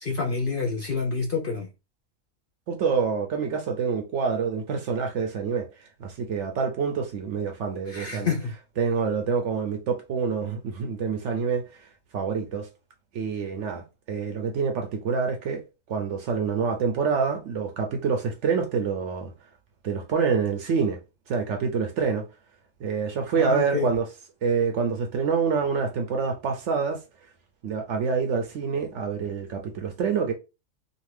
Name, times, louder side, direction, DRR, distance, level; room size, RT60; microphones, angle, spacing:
voice 1, 0.0-1.7 7.9-8.5 23.4-23.9, left 4 dB, 50° left, 0.7 m, -28 dB
voice 2, 2.7-8.3 8.8-11.9 12.1-12.7 13.1-13.8 14.1-15.6 15.9-19.3 19.8-21.0 21.3-22.2 22.8-24.1 24.4-27.0 27.6-30.3, right 5 dB, 65° right, 0.8 m, -26 dB
2.6 x 2.4 x 3.2 m
omnidirectional pair, 1.5 m